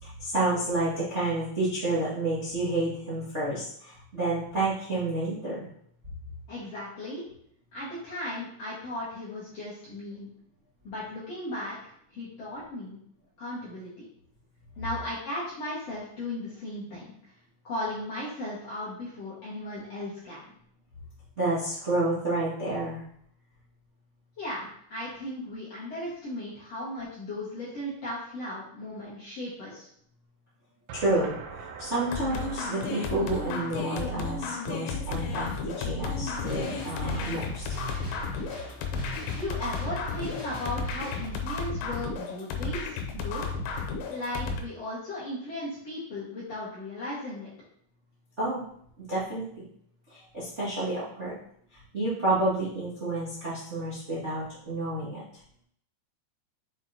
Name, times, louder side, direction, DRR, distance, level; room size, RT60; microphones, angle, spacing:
voice 1, 0.0-5.6 21.4-23.0 30.9-31.3 31.8-37.6 48.4-48.6 49.1-49.6 50.1-51.3 51.7-55.2, right 2 dB, 45° right, -11 dB, 0.9 m, -30 dB
voice 2, 6.5-7.2 7.7-10.3 10.8-13.0 13.4-14.1 14.8-17.0 17.6-20.4 24.4-29.9 39.4-43.5 44.1-47.5, left 1 dB, 55° left, -9 dB, 1.9 m, -36 dB
sound 1, 30.9-35.8, right 5 dB, 80° right, 2.5 m, -44 dB
sound 2, 32.1-44.6, left 4 dB, 85° left, 3.1 m, -33 dB
sound 3, 36.3-41.3, left 1 dB, 30° left, 2.3 m, -42 dB
6.8 x 6.0 x 2.9 m, 0.66 s
omnidirectional pair, 5.1 m